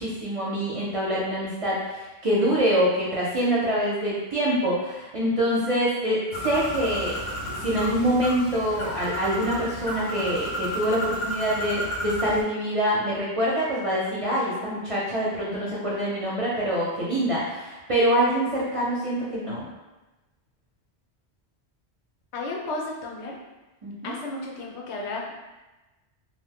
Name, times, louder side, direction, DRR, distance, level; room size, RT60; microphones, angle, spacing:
voice 1, 0.0-7.2 7.6-19.6 23.8-24.1, equal, 40° right, -7 dB, 0.5 m, -25 dB
Bird, 6.3-12.4, equal, 55° left, 0.6 m, -32 dB
voice 2, 22.3-23.4 24.0-25.3, left 2 dB, 80° left, -1 dB, 0.9 m, -33 dB
2.5 x 2.2 x 3.4 m, 1.1 s
omnidirectional pair, 1.2 m